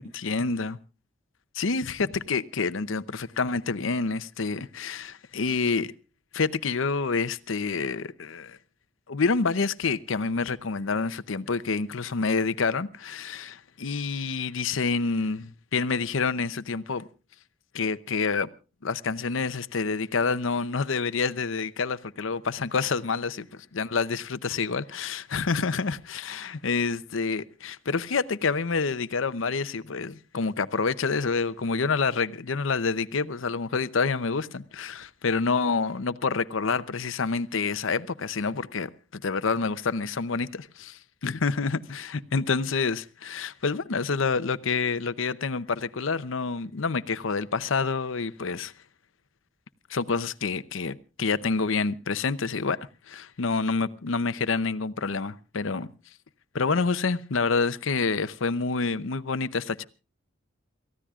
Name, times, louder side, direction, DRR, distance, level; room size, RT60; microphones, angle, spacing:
voice 1, 0.1-0.8 1.5-5.9 6.3-8.6 9.1-17.0 17.7-18.5 18.8-23.4 23.7-48.7 49.9-52.8 53.1-55.9 56.5-59.8, left 4 dB, 80° left, 0.7 m, -28 dB
28.5 x 15.0 x 2.4 m
head